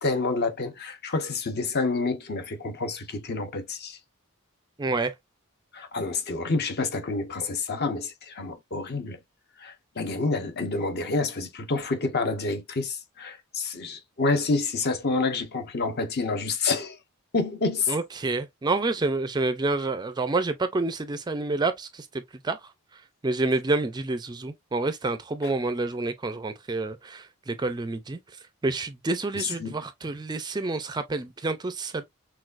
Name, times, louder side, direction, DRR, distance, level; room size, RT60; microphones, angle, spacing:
voice 1, 0.0-4.0 5.7-9.2 9.6-17.0 17.3-17.9 29.3-29.8, left 3 dB, 50° left, 0.8 m, -28 dB
voice 2, 4.8-5.1 17.9-22.7 23.2-28.2 28.6-32.0, right 3 dB, 20° right, 0.4 m, -28 dB
6.0 x 2.3 x 2.4 m
head